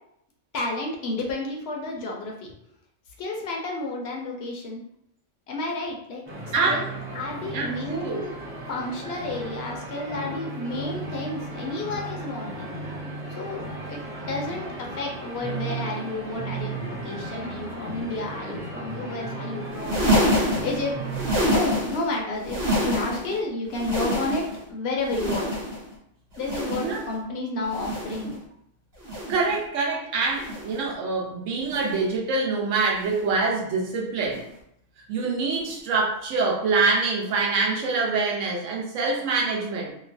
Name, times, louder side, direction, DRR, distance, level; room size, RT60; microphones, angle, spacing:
voice 1, 0.5-2.3 3.2-4.8 5.5-6.9 7.1-8.3 8.7-12.7 13.4-14.0 14.3-20.9 21.4-25.5 26.4-28.4, left 2 dB, 65° left, -1 dB, 0.7 m, -31 dB
sound 1, 6.3-21.3, right 2 dB, 15° right, 0.4 m, -35 dB
voice 2, 6.5-6.8 7.5-8.3 26.7-27.0 29.3-34.4 35.1-39.9, right 4 dB, 85° right, -2 dB, 1.0 m, -25 dB
sound 2, 19.7-22.1 22.4-23.4 23.7-24.7 25.0-25.9 26.3-27.1 27.6-28.3 29.0-29.6 30.3-30.9 31.6-32.1 33.0-33.3 34.3-34.5 35.6-35.7, equal, 50° right, 1.3 m, -27 dB
2.9 x 2.0 x 2.6 m, 0.74 s
omnidirectional pair, 1.3 m